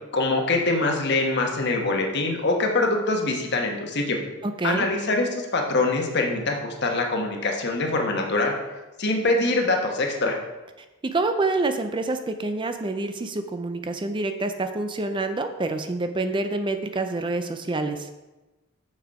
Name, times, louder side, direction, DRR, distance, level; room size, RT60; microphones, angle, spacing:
voice 1, 0.1-4.2 4.6-8.5 9.0-10.4, left 2 dB, 55° left, 2 dB, 1.3 m, -24 dB
voice 2, 4.4-4.9 11.1-18.1, right 2 dB, 25° right, 7 dB, 0.5 m, -27 dB
7.0 x 6.5 x 4.8 m, 1.1 s
head